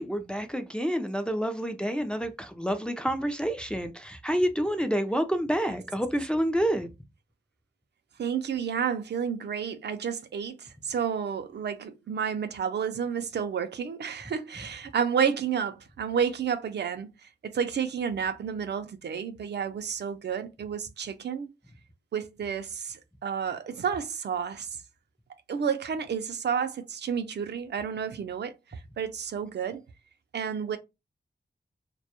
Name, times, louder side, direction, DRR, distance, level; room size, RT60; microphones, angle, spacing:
voice 1, 0.0-6.9, equal, 5° left, 0.3 m, -28 dB
voice 2, 8.2-17.1 17.4-21.5 22.1-24.7 25.5-29.8 30.3-30.8, right 7 dB, 70° right, 0.4 m, -31 dB
2.2 x 2.0 x 2.8 m
wide cardioid pair, 80°, 18 cm